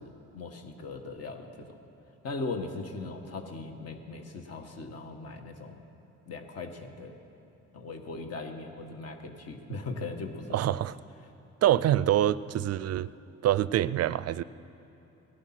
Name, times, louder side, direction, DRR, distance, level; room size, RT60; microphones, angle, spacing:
voice 1, 0.0-1.8 2.2-5.8 6.3-7.2 7.7-10.7, left 3 dB, 55° left, 1.5 m, -39 dB
voice 2, 10.5-10.9 11.6-13.1 13.4-14.4, right 12 dB, 55° right, 0.4 m, -25 dB
18.0 x 11.5 x 5.9 m
cardioid pair, 90°, 30 cm